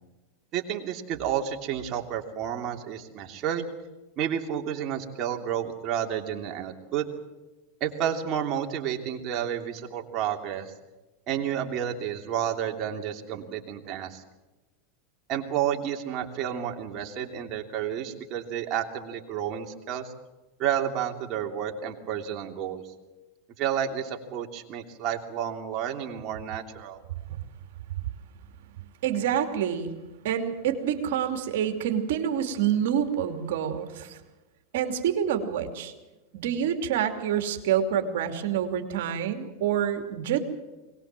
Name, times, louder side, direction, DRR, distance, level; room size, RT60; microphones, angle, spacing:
voice 1, 0.5-3.7 4.2-7.1 7.8-10.7 11.3-14.2 15.3-20.1 20.6-22.8 23.6-27.0, right 9 dB, 45° right, 3 dB, 3.0 m, -31 dB
voice 2, 29.0-29.9 30.2-34.2 34.7-35.9 36.3-40.4, right 9 dB, 70° right, 6 dB, 2.8 m, -27 dB
22.0 x 19.5 x 7.6 m, 1.1 s
hypercardioid pair, 110°, 0 cm